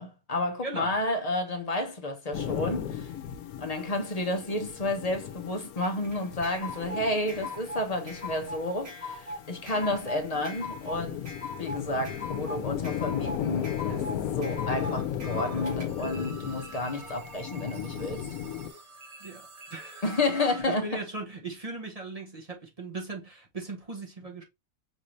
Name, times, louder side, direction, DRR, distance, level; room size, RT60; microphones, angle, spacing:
voice 1, 0.0-3.1 3.6-11.3 11.6-18.3 20.0-21.0, left 2 dB, 35° left, 0.7 m, -31 dB
voice 2, 0.6-1.0 19.2-20.0 20.7-24.4, right 3 dB, 30° right, 0.8 m, -38 dB
sound 1, 2.3-18.7, left 10 dB, 85° left, 1.1 m, -36 dB
sound 2, 5.8-15.9, left 2 dB, 80° right, 2.7 m, -40 dB
sound 3, 14.7-15.6 15.9-20.6, right 2 dB, 55° right, 1.1 m, -46 dB
5.3 x 2.7 x 3.1 m
omnidirectional pair, 1.5 m